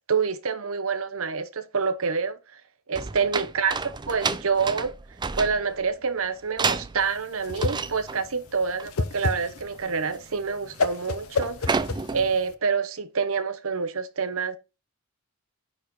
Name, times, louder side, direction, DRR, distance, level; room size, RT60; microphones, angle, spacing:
voice 1, 0.1-2.6 2.9-3.8 4.1-4.9 5.3-11.8 12.1-14.6, right 5 dB, 65° right, 0.9 m, -27 dB
sound 1, 2.9-5.9 6.6-7.2 7.5-8.3 8.6-8.9 9.1-9.4 9.7-10.2 10.5-10.9 11.3-12.4, right 4 dB, 20° right, 0.4 m, -30 dB
Whoosh swoosh swish, 7.0-12.5, left 4 dB, 70° left, 0.8 m, -30 dB
9.8 x 4.3 x 4.2 m
head